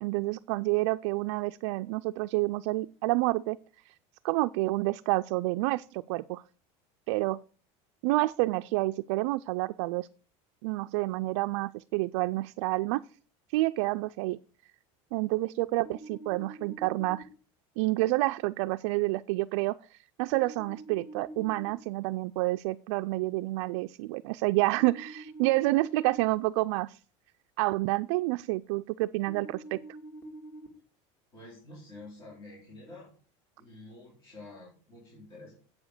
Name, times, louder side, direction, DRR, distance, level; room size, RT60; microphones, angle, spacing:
voice 1, 0.0-3.6 4.2-6.4 7.1-7.4 8.0-10.1 10.6-13.0 13.5-14.4 15.1-17.3 17.8-27.0 27.6-29.8, right 20 dB, 70° right, 9 dB, 0.4 m, -29 dB
sound 1, 15.9-17.2 20.3-21.7 24.8-26.2 29.3-30.7, right 2 dB, 15° left, 1.9 m, -45 dB
voice 2, 31.3-33.1 33.6-35.5, left 2 dB, 35° left, -5 dB, 4.4 m, -48 dB
8.1 x 7.1 x 6.6 m, 0.41 s
cardioid pair, 165°, 15 cm